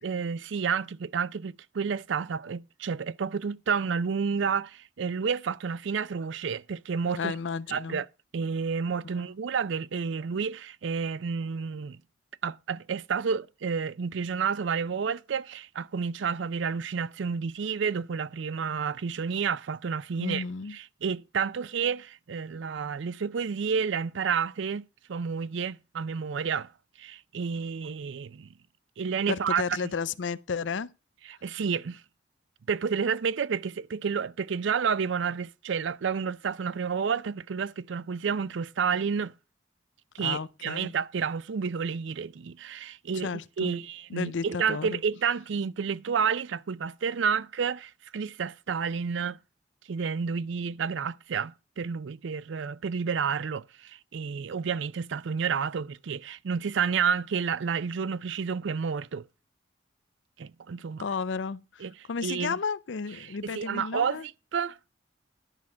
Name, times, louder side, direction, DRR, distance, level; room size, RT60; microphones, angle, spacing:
voice 1, 0.0-7.3 7.7-8.1 8.3-12.0 12.4-20.4 20.7-24.8 25.1-26.7 27.0-28.5 29.0-29.6 31.3-32.0 32.7-39.3 40.1-43.3 43.6-49.4 49.9-59.3 60.4-61.0 61.8-61.9 62.2-62.5 63.4-64.8, right 6 dB, 75° right, 0.4 m, -30 dB
voice 2, 7.1-8.0 9.1-9.3 20.2-20.8 29.3-30.9 40.2-40.9 43.2-43.8 44.1-45.0 61.0-64.3, left 5 dB, 80° left, 0.5 m, -33 dB
11.0 x 5.8 x 6.1 m
head